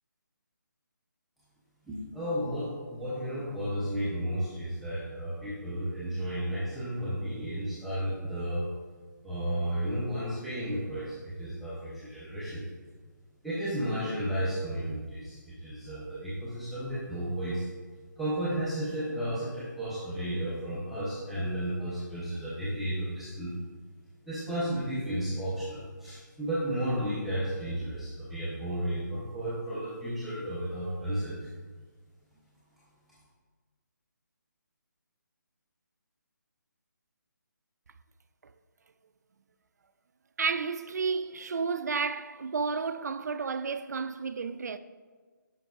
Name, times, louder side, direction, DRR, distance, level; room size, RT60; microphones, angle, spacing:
voice 1, 1.9-8.7 9.2-12.6 13.4-17.7 18.2-23.5 24.3-31.5, right 1 dB, ahead, 0.5 m, -33 dB
voice 2, 40.4-44.8, right 5 dB, 55° right, 0.4 m, -31 dB
9.3 x 5.8 x 2.3 m
hypercardioid pair, 165°, 11 cm